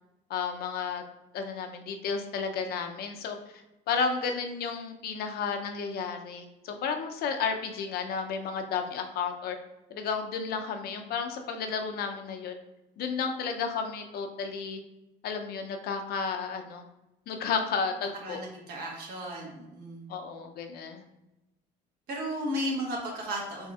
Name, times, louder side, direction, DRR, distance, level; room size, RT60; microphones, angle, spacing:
voice 1, 0.3-1.0 1.3-3.4 3.9-9.6 9.9-12.5 13.0-14.8 15.2-16.8 17.3-18.4 20.1-21.0, left 5 dB, 65° left, 5 dB, 0.6 m, -32 dB
voice 2, 18.2-20.1 22.1-23.7, equal, 70° right, -1 dB, 1.4 m, -34 dB
4.2 x 3.9 x 2.4 m, 0.96 s
cardioid pair, 110°, 17 cm